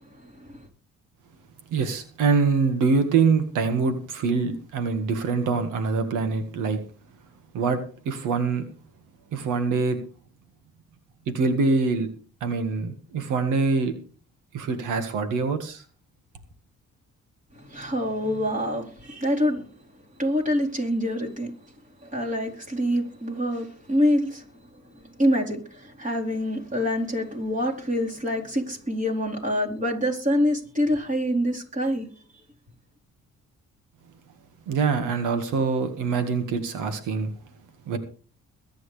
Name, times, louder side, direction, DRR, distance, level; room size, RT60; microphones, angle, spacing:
voice 1, 1.7-6.8 7.5-8.6 9.3-10.0 11.3-12.1 12.4-13.9 14.5-15.8 34.7-37.3 37.9-38.0, right 4 dB, 90° right, 1.8 m, -24 dB
voice 2, 17.5-19.6 20.2-21.5 22.0-24.4 25.2-32.1, equal, 25° right, 4.2 m, -26 dB
22.5 x 9.4 x 3.4 m
cardioid pair, 90°, 30 cm